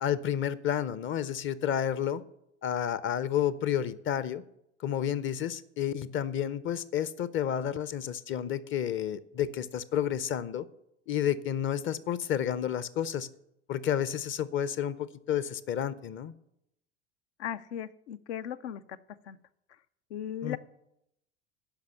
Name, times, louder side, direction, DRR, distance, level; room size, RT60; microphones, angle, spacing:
voice 1, 0.0-2.2 2.6-4.4 4.8-10.7 11.1-13.3 13.7-16.3 20.4-20.6, left 9 dB, 35° left, 17 dB, 0.6 m, -30 dB
voice 2, 17.4-19.0 19.2-19.4 20.1-20.6, left 9 dB, 75° left, 14 dB, 0.6 m, -37 dB
11.5 x 5.3 x 7.0 m, 0.80 s
hypercardioid pair, 75°, 34 cm